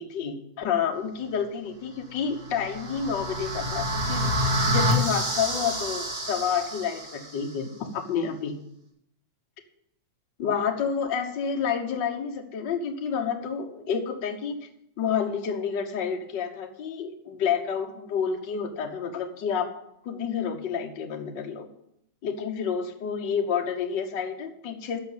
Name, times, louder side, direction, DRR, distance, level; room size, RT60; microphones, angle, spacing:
voice 1, 0.0-4.3 4.7-8.5 10.4-14.6 15.0-19.7 20.0-21.7 22.2-25.0, left 7 dB, 60° left, 3 dB, 1.2 m, -29 dB
sound 1, 2.3-7.4, equal, 30° right, 2.8 m, -28 dB
13.5 x 5.3 x 8.0 m, 0.77 s
omnidirectional pair, 3.8 m